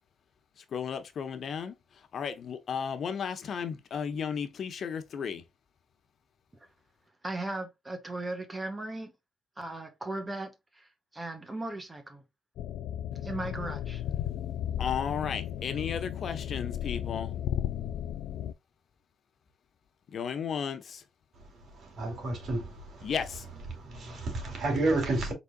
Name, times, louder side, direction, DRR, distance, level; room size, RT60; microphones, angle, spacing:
voice 1, 0.7-1.7 2.1-5.4 14.8-17.3 20.1-21.0 23.0-23.5, left 7 dB, 55° left, 0.8 m, -34 dB
voice 2, 7.2-9.1 9.6-12.2 13.2-14.0, right 2 dB, 20° right, 1.2 m, -37 dB
sound 1, 12.6-18.5, left 11 dB, 85° left, 0.4 m, -34 dB
voice 3, 21.7-23.1 23.7-25.3, right 2 dB, 60° right, 2.7 m, -31 dB
4.7 x 4.1 x 2.2 m
cardioid pair, 90°, 0 cm